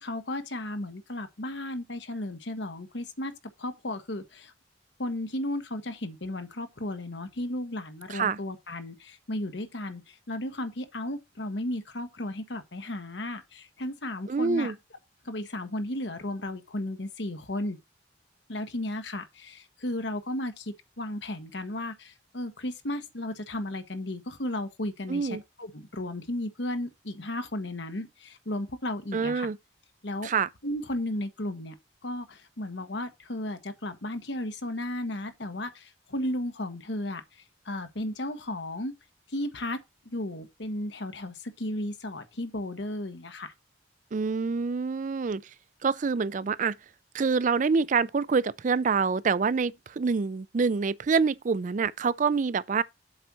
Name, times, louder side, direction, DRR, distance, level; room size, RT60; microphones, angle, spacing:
voice 1, 0.0-4.5 5.0-14.7 15.2-17.8 18.5-29.5 30.0-30.3 30.6-31.7 32.0-38.9 39.3-39.8 40.0-43.5, left 1 dB, 70° left, 1.3 m, -34 dB
voice 2, 14.3-14.8 25.1-25.4 29.1-29.6 30.2-30.5 44.1-45.4 45.8-46.8 47.1-52.8, right 5 dB, 40° right, 0.4 m, -26 dB
7.8 x 4.2 x 6.2 m
head